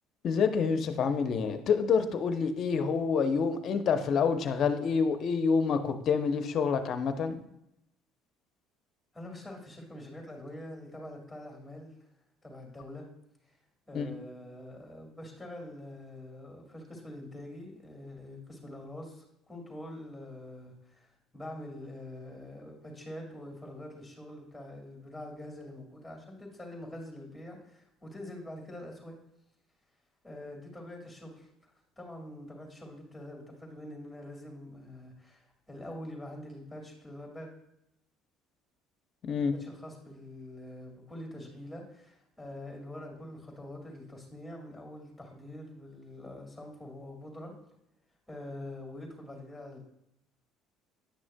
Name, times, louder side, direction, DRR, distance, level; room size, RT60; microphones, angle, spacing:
voice 1, 0.2-7.4 13.9-14.1 39.2-39.5, left 5 dB, 55° left, 9 dB, 0.6 m, -27 dB
voice 2, 9.1-11.9 12.4-13.1 13.5-13.6 13.9-29.2 30.2-37.5 39.5-47.5 48.3-49.8, left 1 dB, 5° left, 0 dB, 2.3 m, -45 dB
9.8 x 6.1 x 2.2 m, 0.82 s
supercardioid pair, 85°, 0 cm